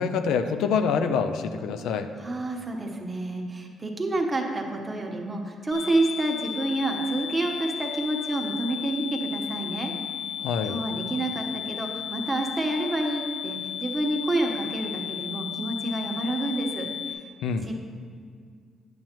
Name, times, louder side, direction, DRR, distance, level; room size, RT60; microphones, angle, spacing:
voice 1, 0.0-2.1 10.4-10.8 17.4-17.7, left 6 dB, 85° left, 9 dB, 0.4 m, -26 dB
voice 2, 2.2-9.9 10.6-16.9 17.7-17.8, right 2 dB, 25° right, 1 dB, 1.1 m, -28 dB
sound 1, 5.7-17.1, left 10 dB, 70° left, 1.4 m, -34 dB
8.8 x 7.7 x 3.0 m, 2.1 s
cardioid pair, 90°, 0 cm